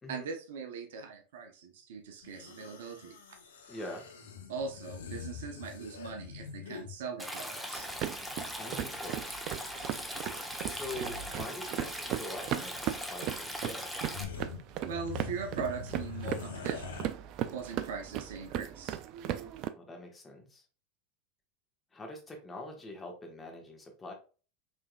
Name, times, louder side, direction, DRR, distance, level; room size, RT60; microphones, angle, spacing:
voice 1, 0.1-3.2 4.5-7.9 14.9-17.0 17.5-19.0, right 5 dB, 70° right, 6 dB, 0.8 m, -40 dB
sound 1, 2.2-7.0 8.4-8.5 8.7-9.4 9.7-10.2 10.7-11.5 11.7-12.0 13.1-13.2 13.6-13.7 14.0-17.1, left 6 dB, 75° left, 0.8 m, -44 dB
voice 2, 3.7-4.1 8.6-9.2 10.6-13.9 19.8-20.6 21.9-24.1, left 1 dB, 20° left, 2 dB, 1.4 m, -44 dB
Stream, 7.2-14.2, equal, ahead, 0.9 m, -40 dB
sound 2, 7.8-19.7, right 11 dB, 50° right, 0.4 m, -38 dB
4.8 x 3.5 x 2.3 m, 0.36 s
hypercardioid pair, 85°, 0 cm